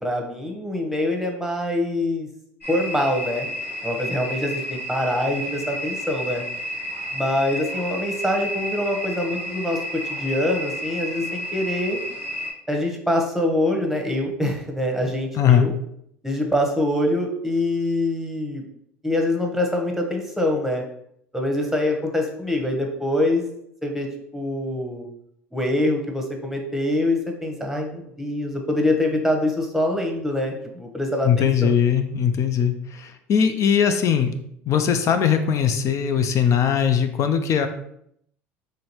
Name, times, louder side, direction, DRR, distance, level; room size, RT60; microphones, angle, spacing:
voice 1, 0.0-2.3 2.7-3.5 3.8-6.4 7.1-12.0 12.7-15.7 16.2-18.6 19.0-20.8 21.3-23.5 23.8-24.1 24.3-25.1 25.5-31.7, left 1 dB, 5° right, 2 dB, 1.0 m, -24 dB
sound 1, 2.6-12.5, equal, 85° left, 1.3 m, -31 dB
voice 2, 15.3-15.7 31.2-34.3 34.7-37.7, left 8 dB, 45° left, 8 dB, 0.4 m, -20 dB
3.9 x 3.2 x 3.0 m, 0.73 s
hypercardioid pair, 70°, 7 cm